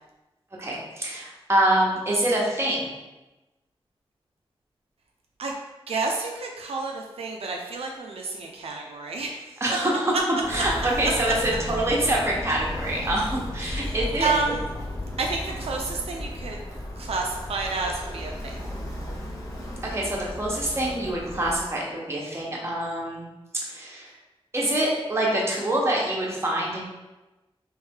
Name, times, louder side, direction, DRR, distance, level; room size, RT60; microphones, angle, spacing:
voice 1, 0.6-2.9 9.6-10.1 10.5-14.3 19.8-23.3 23.5-24.1 24.5-26.9, right 1 dB, 25° right, -3 dB, 0.9 m, -25 dB
voice 2, 5.9-9.4 11.0-11.1 13.7-14.6 15.2-16.6 17.0-18.6, right 4 dB, 85° right, 1 dB, 0.4 m, -30 dB
Walk footsteps, 10.4-21.6, left 1 dB, 35° left, 1.0 m, -34 dB
3.2 x 3.1 x 3.5 m, 1.1 s
wide cardioid pair, 95°, 10 cm